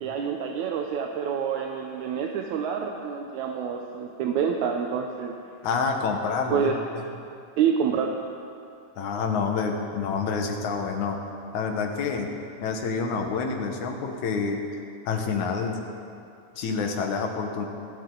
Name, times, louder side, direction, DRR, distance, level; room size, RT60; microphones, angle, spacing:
voice 1, 0.0-5.3 6.5-6.8 7.6-8.1, right 7 dB, 80° right, 2 dB, 2.2 m, -27 dB
voice 2, 5.6-6.7 9.0-11.2 11.5-12.3 12.6-14.6 15.1-15.8 16.6-17.7, left 5 dB, 80° left, 3 dB, 2.7 m, -27 dB
26.5 x 12.5 x 3.9 m, 2.5 s
omnidirectional pair, 3.4 m